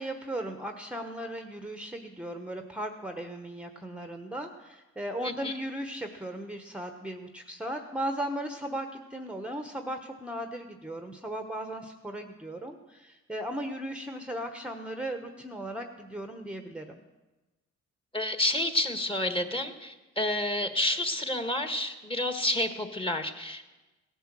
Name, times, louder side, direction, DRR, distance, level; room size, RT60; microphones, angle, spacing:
voice 1, 0.0-17.0, right 1 dB, 5° right, 6 dB, 1.1 m, -37 dB
voice 2, 5.2-5.5 18.1-23.7, left 1 dB, 15° left, 7 dB, 1.6 m, -29 dB
17.0 x 10.0 x 7.6 m, 1.1 s
cardioid pair, 90°, 30 cm